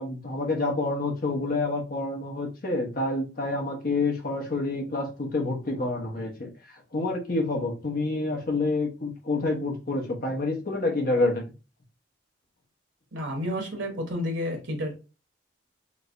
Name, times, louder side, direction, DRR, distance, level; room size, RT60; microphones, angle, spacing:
voice 1, 0.0-11.4, left 2 dB, 50° left, 0.9 m, -28 dB
voice 2, 13.1-14.9, left 1 dB, 90° right, 1.0 m, -30 dB
3.3 x 3.1 x 2.5 m
head